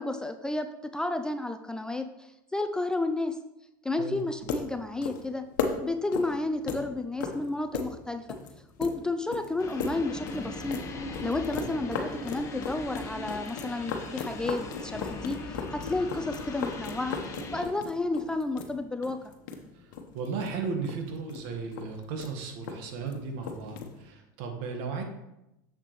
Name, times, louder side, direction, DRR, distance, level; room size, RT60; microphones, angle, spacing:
voice 1, 0.0-3.4 3.8-5.5 5.8-8.3 8.8-10.8 11.2-19.2, left 2 dB, 5° left, 7 dB, 0.3 m, -32 dB
sound 1, 4.2-24.1, left 5 dB, 80° left, 1.0 m, -38 dB
sound 2, 9.6-17.6, left 2 dB, 30° left, 1.1 m, -39 dB
voice 2, 19.7-25.0, right 5 dB, 60° right, 4 dB, 1.4 m, -35 dB
7.2 x 6.6 x 3.1 m, 0.89 s
supercardioid pair, 120°, 10 cm